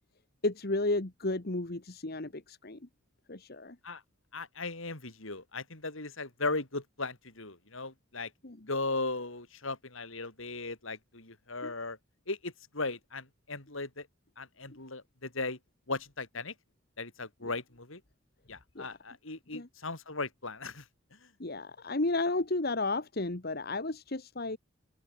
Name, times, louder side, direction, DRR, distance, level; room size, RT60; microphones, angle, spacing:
voice 1, 0.4-2.8 3.3-3.8 8.4-8.7 11.6-11.7 17.4-17.5 18.7-19.0 19.5-19.7 21.4-24.6, left 2 dB, 45° left, 1.4 m, -33 dB
voice 2, 4.3-8.3 8.7-12.0 12.3-14.1 14.4-15.6 15.9-16.5 17.0-18.0 18.5-20.8, left 3 dB, 70° left, 4.0 m, -37 dB
open air
head